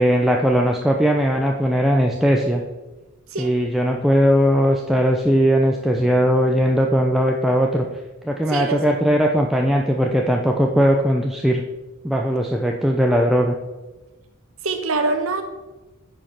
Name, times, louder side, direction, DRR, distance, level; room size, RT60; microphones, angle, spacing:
voice 1, 0.0-2.6 3.4-7.9 8.2-11.6 12.0-13.5, equal, ahead, 0 dB, 0.5 m, -19 dB
voice 2, 8.5-8.8 14.6-15.4, right 3 dB, 65° right, 6 dB, 1.0 m, -23 dB
9.2 x 5.1 x 5.8 m, 1.1 s
head